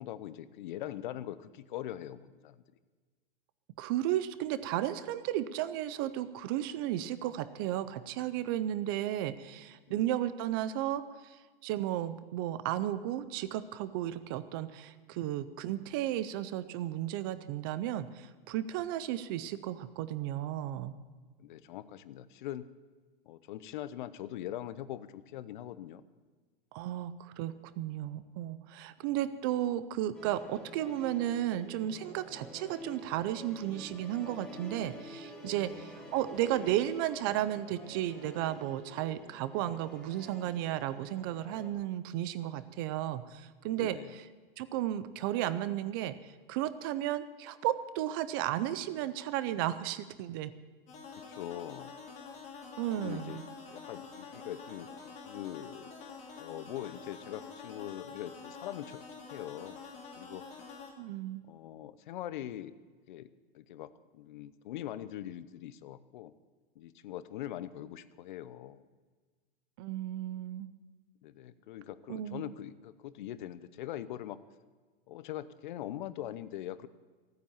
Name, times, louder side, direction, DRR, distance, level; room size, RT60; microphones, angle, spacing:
voice 1, 0.0-2.6 9.9-10.0 21.4-22.7 23.2-26.0 35.6-35.8 43.8-44.1 51.1-51.9 53.0-53.4 53.7-54.9 55.2-55.9 56.4-59.0 59.3-59.8 60.2-60.4 61.5-62.7 63.1-63.3 63.5-66.3 66.8-68.8 71.2-74.4 75.1-76.9, left 12 dB, 55° left, 15 dB, 0.7 m, -42 dB
voice 2, 3.8-20.9 26.7-44.0 44.6-50.5 52.8-53.4 61.0-61.4 69.8-70.7 72.1-72.5, right 12 dB, 25° right, 14 dB, 0.4 m, -34 dB
Musical instrument, 30.1-41.7, equal, ahead, 1.2 m, -48 dB
sound 1, 50.9-60.9, left 5 dB, 20° left, 2.3 m, -47 dB
15.5 x 9.4 x 7.2 m, 1.4 s
supercardioid pair, 165°, 30 cm